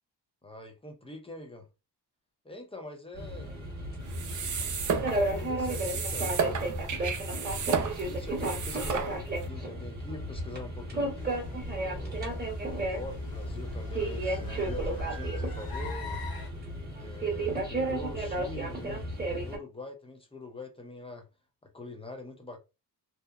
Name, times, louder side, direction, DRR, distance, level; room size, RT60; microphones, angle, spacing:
voice 1, 0.4-1.7 2.4-3.5 5.1-6.7 7.9-11.2 11.8-12.3 12.9-16.2 16.9-19.1 19.4-21.3 21.6-22.6, left 2 dB, 15° left, 0.5 m, -44 dB
sound 1, 3.1-19.6, right 1 dB, 20° right, 0.9 m, -33 dB
sound 2, 4.0-9.5, right 6 dB, 45° right, 0.5 m, -33 dB
sound 3, 11.2-16.5, equal, 55° left, 0.8 m, -39 dB
2.8 x 2.0 x 2.3 m
wide cardioid pair, 135°, 44 cm